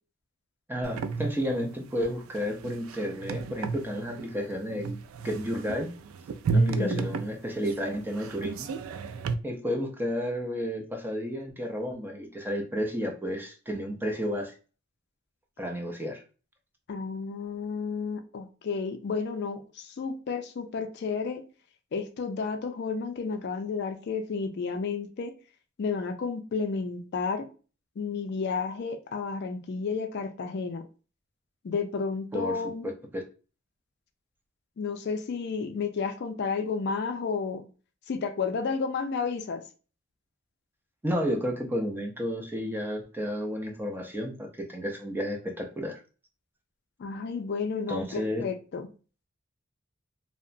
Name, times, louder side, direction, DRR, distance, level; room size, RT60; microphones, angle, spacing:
voice 1, 0.7-5.0 5.2-5.9 6.5-8.7 9.4-14.5 15.6-16.2 32.3-33.2 41.0-46.0 47.9-48.4, equal, 10° right, 0.4 m, -32 dB
sound 1, 0.8-9.3, right 4 dB, 85° right, 0.3 m, -32 dB
voice 2, 6.5-7.1 16.9-21.4 21.9-25.3 25.8-27.5 28.0-30.8 31.6-32.9 34.8-37.6 38.1-39.6 47.0-48.9, left 5 dB, 55° left, 0.4 m, -32 dB
2.8 x 2.1 x 2.5 m
head